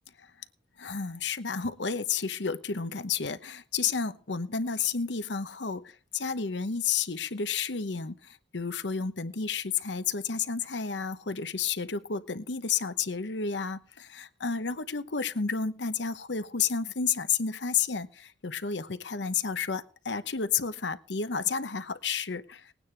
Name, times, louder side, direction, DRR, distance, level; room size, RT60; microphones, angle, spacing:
voice 1, 0.8-22.7, left 6 dB, 85° left, 1.0 m, -31 dB
20.5 x 9.4 x 3.5 m
head